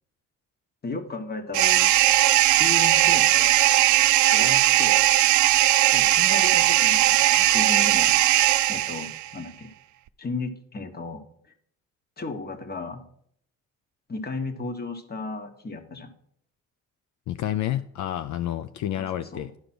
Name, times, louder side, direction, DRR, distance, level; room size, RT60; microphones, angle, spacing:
voice 1, 0.8-1.9 2.6-3.6 4.3-5.1 5.9-8.1 8.7-9.7 10.2-11.2 12.2-13.0 14.1-16.1 19.0-19.4, left 3 dB, 30° left, 7 dB, 1.3 m, -34 dB
sound 1, 1.5-9.3, right 15 dB, 70° right, 0.5 m, -19 dB
voice 2, 17.3-19.5, left 12 dB, 70° left, 11 dB, 0.5 m, -29 dB
11.5 x 5.1 x 6.0 m, 0.67 s
cardioid pair, 90°, 30 cm